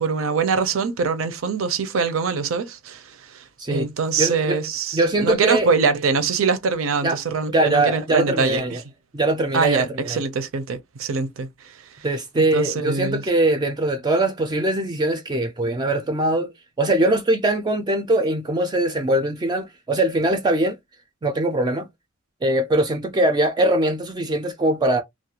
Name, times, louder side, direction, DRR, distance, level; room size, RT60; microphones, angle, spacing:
voice 1, 0.0-8.6 9.5-11.7 12.4-13.2, right 5 dB, 80° right, 0.5 m, -23 dB
voice 2, 4.2-4.6 4.9-5.7 7.0-7.2 7.5-8.8 9.1-10.2 12.0-16.5 16.8-20.8 21.2-21.9 22.4-25.0, right 1 dB, 20° right, 0.3 m, -21 dB
2.4 x 2.1 x 2.8 m
head